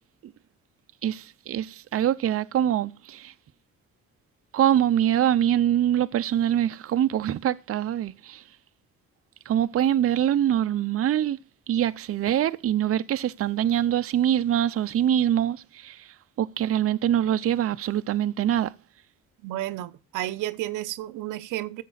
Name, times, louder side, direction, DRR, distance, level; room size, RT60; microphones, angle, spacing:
voice 1, 1.0-3.3 4.5-8.4 9.5-11.4 11.7-18.8, right 11 dB, 50° right, 0.6 m, -24 dB
voice 2, 19.4-21.8, right 15 dB, 90° right, 0.7 m, -32 dB
11.0 x 7.4 x 4.0 m
cardioid pair, 90°, 30 cm